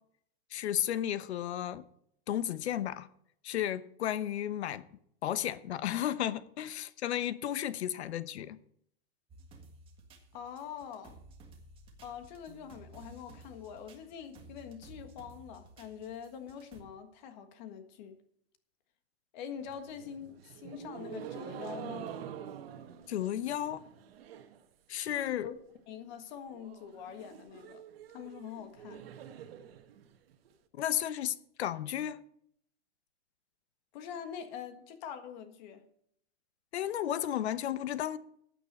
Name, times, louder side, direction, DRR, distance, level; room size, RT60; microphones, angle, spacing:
voice 1, 0.5-1.8 2.3-3.1 3.4-4.8 5.2-8.6 23.1-23.8 24.9-25.5 30.7-32.2 36.7-38.2, left 11 dB, 85° left, 0.9 m, -33 dB
sound 1, 9.3-16.8, right 2 dB, 15° right, 1.6 m, -55 dB
voice 2, 10.3-11.2 12.0-18.2 19.3-22.1 25.1-25.5 25.9-27.8 28.1-29.0 33.9-35.8, left 8 dB, 45° left, 1.6 m, -44 dB
sound 2, 19.6-24.6 24.9-25.4 25.8-25.9 26.1-26.2 26.5-30.5, right 9 dB, 65° right, 1.5 m, -47 dB
15.0 x 9.1 x 4.3 m
supercardioid pair, 160°, 32 cm